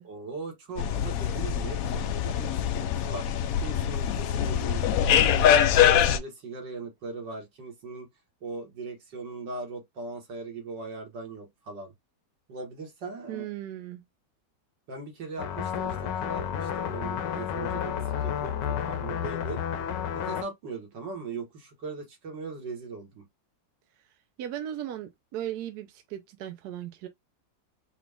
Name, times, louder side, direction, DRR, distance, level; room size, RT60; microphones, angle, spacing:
voice 1, 0.0-5.5 5.8-8.1 8.4-11.9 12.5-13.5 14.9-16.0 16.2-18.6 18.9-19.6 20.1-23.2, right 3 dB, 90° right, 2.3 m, -39 dB
sound 1, 0.8-6.2, left 9 dB, 70° left, 0.9 m, -24 dB
voice 2, 13.3-14.0 24.4-27.1, right 11 dB, 70° right, 1.2 m, -37 dB
sound 2, 15.4-20.4, left 8 dB, 90° left, 1.4 m, -31 dB
5.0 x 2.5 x 3.4 m
omnidirectional pair, 1.9 m